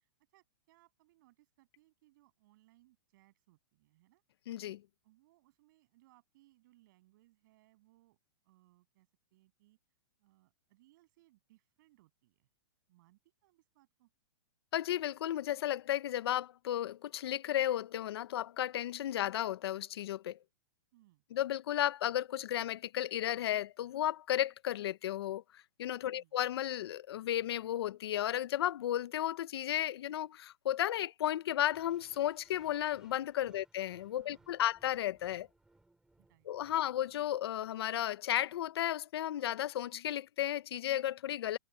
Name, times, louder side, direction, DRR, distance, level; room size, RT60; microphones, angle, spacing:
voice 1, 0.0-4.2 5.0-8.2 8.4-9.8 10.2-12.5 12.9-14.1 20.9-21.2 26.0-26.4 33.5-33.6 34.1-34.7 36.2-36.8, right 18 dB, 45° right, 7.7 m, -68 dB
voice 2, 4.5-4.8 14.7-20.4 21.3-35.5 36.5-41.6, left 12 dB, 60° left, 0.8 m, -34 dB
sound 1, 31.7-37.7, right 2 dB, 5° right, 7.5 m, -68 dB
hypercardioid pair, 160°, 14 cm